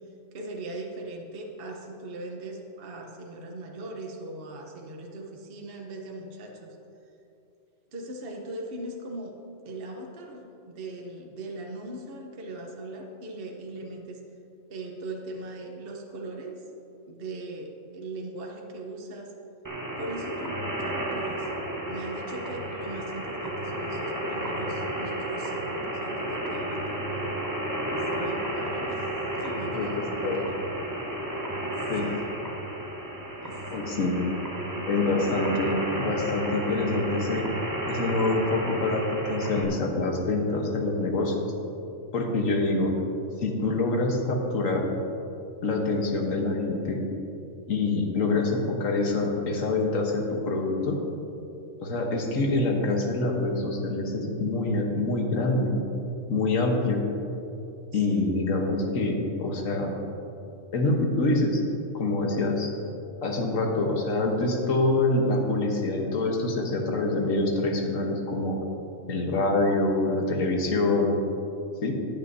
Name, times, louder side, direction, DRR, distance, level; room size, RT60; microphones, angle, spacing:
voice 1, 0.3-6.8 7.9-9.4 9.6-14.2 14.7-16.6 17.1-19.3 20.0-21.5 21.8-27.5 27.9-29.1 29.4-30.5 32.0-32.2 33.4-33.6 57.9-58.3, right 2 dB, 50° right, 1 dB, 1.1 m, -39 dB
sound 1, 19.6-39.6, right 1 dB, 15° right, 1.1 m, -32 dB
voice 2, 29.7-30.4 31.9-32.1 33.7-34.2 34.9-37.5 37.9-41.3 42.1-42.9 43.4-44.9 45.6-47.0 47.7-51.0 51.8-55.7 56.3-57.0 57.9-60.0 60.7-61.6 61.9-62.7 63.2-68.6 69.1-71.2 71.8-72.0, left 2 dB, 85° left, 1 dB, 1.6 m, -26 dB
15.5 x 8.9 x 2.7 m, 2.8 s
omnidirectional pair, 1.3 m